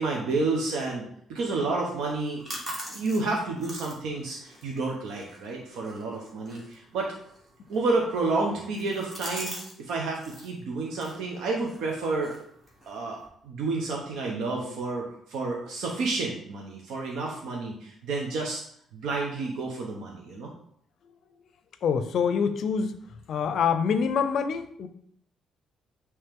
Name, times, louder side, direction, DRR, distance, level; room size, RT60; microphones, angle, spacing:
voice 1, 0.0-2.6 2.9-7.1 7.7-12.3 12.9-13.2 13.4-18.6 18.9-20.5, right 3 dB, 85° right, -1 dB, 0.9 m, -30 dB
sound 1, 2.0-9.8 10.0-10.5 10.9-13.3, equal, 20° right, 1.5 m, -44 dB
voice 2, 21.8-23.0 23.3-24.9, left 6 dB, 55° left, 11 dB, 0.5 m, -25 dB
8.9 x 3.2 x 3.6 m, 0.69 s
cardioid pair, 160°, 0 cm